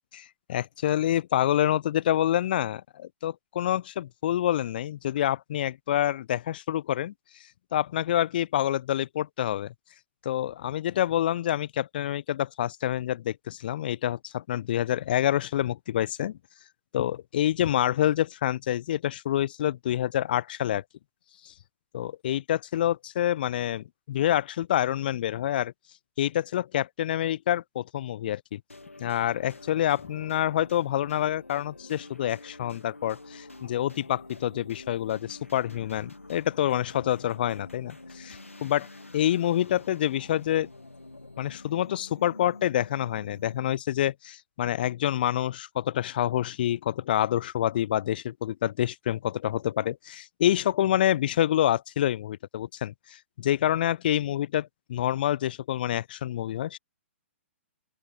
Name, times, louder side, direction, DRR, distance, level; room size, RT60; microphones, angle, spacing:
voice 1, 0.1-7.1 7.7-9.7 10.2-16.4 16.9-20.8 21.4-21.5 21.9-25.7 26.2-28.6 29.0-38.9 39.1-40.7 41.4-56.8, left 12 dB, 45° left, 0.8 m, -27 dB
sound 1, 28.7-43.8, left 2 dB, 85° left, 1.9 m, -47 dB
open air
figure-of-eight pair, 120°, 7 cm